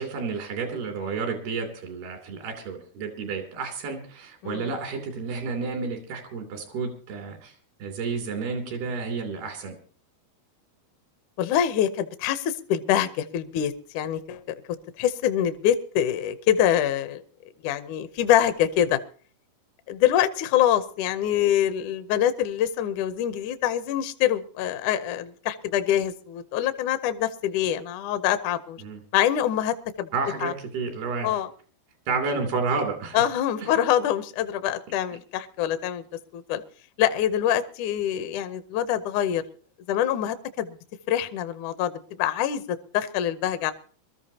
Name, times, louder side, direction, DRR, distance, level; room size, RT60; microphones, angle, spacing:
voice 1, 0.0-7.5 7.8-9.8 28.8-29.0 30.1-31.3 32.1-33.2 33.6-33.7, right 4 dB, 85° right, 4 dB, 5.0 m, -31 dB
voice 2, 11.4-14.4 15.0-17.2 17.6-19.0 19.9-28.8 29.1-30.1 30.4-30.5 31.2-31.5 33.1-36.0 36.3-36.6 37.0-39.4 39.9-40.8 41.1-41.9 42.2-43.7, left 10 dB, 75° left, 11 dB, 1.9 m, -25 dB
24.0 x 13.5 x 2.8 m, 0.43 s
omnidirectional pair, 4.4 m